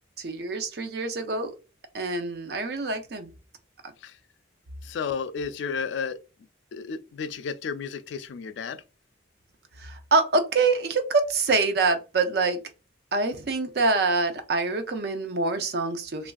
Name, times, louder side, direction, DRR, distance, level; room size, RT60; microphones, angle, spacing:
voice 1, 0.2-1.5 1.9-3.3 3.8-3.9 9.8-12.6 13.1-16.3, right 3 dB, 60° right, 0.5 m, -25 dB
voice 2, 4.8-6.2 6.7-8.8, left 6 dB, 85° left, 0.3 m, -32 dB
3.0 x 2.5 x 2.2 m
head